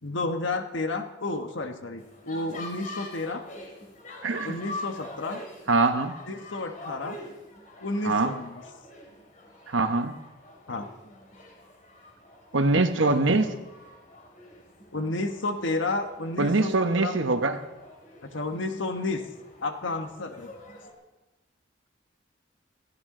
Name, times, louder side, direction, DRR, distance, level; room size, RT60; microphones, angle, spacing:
voice 1, 0.0-3.4 4.4-5.4 6.3-7.2 7.8-8.6 10.7-10.9 14.9-16.7 17.0-17.1 18.2-19.2 19.6-20.5, left 2 dB, 75° left, 6 dB, 1.3 m, -31 dB
sound 1, 2.0-20.9, left 2 dB, 40° left, 2.9 m, -45 dB
voice 2, 4.2-4.6 5.7-6.1 8.0-8.3 9.7-10.1 12.5-13.5 16.4-17.6, right 3 dB, 80° right, 8 dB, 1.1 m, -23 dB
20.0 x 14.5 x 3.8 m, 1.1 s
head